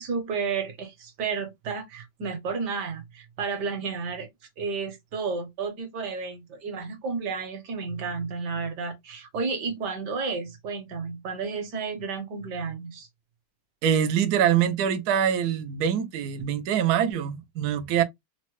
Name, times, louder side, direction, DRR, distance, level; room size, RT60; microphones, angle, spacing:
voice 1, 0.0-4.3 4.6-13.1, right 5 dB, 65° right, 1.3 m, -32 dB
voice 2, 13.8-18.0, right 9 dB, 80° right, 0.8 m, -24 dB
3.6 x 2.0 x 2.9 m
omnidirectional pair, 2.2 m